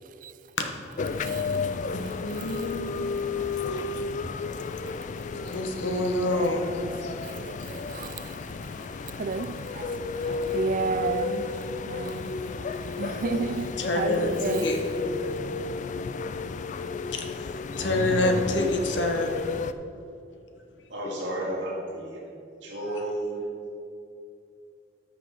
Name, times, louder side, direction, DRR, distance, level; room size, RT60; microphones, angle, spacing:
sound 1, 1.0-19.7, left 4 dB, 45° left, 0.4 m, -32 dB
voice 1, 1.9-3.0 3.8-3.9 5.3-7.1 13.3-15.2 17.1-17.5 17.8-19.4, left 1 dB, 85° left, 1.3 m, -28 dB
voice 2, 7.4-8.3 9.2-11.5 11.9-14.7, right 4 dB, 45° right, 0.4 m, -32 dB
voice 3, 20.9-22.3 22.6-23.4, right 1 dB, 70° right, 2.3 m, -32 dB
13.0 x 6.0 x 4.8 m
head